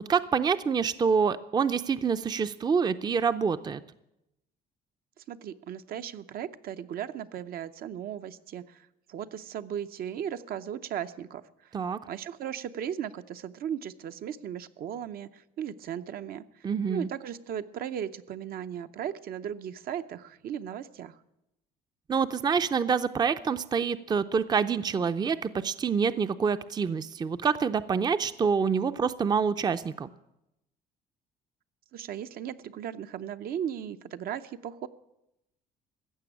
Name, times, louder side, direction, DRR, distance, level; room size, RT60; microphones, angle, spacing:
voice 1, 0.1-3.8 11.7-12.0 16.6-17.1 22.1-30.1, right 6 dB, 25° right, 12 dB, 0.5 m, -26 dB
voice 2, 5.2-11.8 12.0-21.2 31.9-34.9, right 9 dB, 60° right, 10 dB, 0.7 m, -37 dB
15.5 x 7.0 x 9.9 m, 0.87 s
cardioid pair, 110°, 17 cm